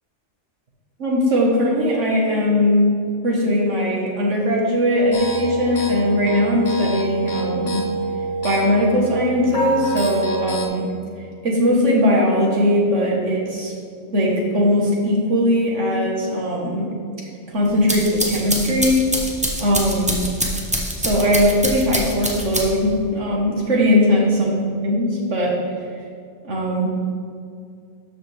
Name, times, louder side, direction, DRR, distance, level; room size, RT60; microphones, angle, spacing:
voice 1, 1.0-2.9 3.2-7.8 8.4-10.9 11.4-13.7 14.1-16.9 17.5-19.0 19.6-20.2 21.0-25.5 26.4-26.9, left 1 dB, 80° right, -2 dB, 1.8 m, -19 dB
sound 1, 5.1-10.7, right 2 dB, 45° left, 1.1 m, -25 dB
sound 2, 17.7-23.0, equal, 5° right, 0.7 m, -25 dB
13.0 x 5.1 x 3.4 m, 2.3 s
omnidirectional pair, 1.2 m